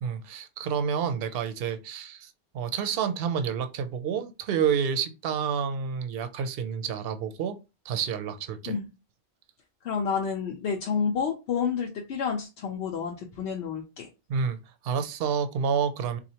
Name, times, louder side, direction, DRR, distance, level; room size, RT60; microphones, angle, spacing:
voice 1, 0.0-7.6 7.8-8.8 14.3-14.6 14.8-16.2, right 7 dB, 70° right, 0.8 m, -29 dB
voice 2, 9.8-14.1, left 6 dB, 85° left, 0.9 m, -29 dB
4.2 x 2.5 x 2.8 m
omnidirectional pair, 1.1 m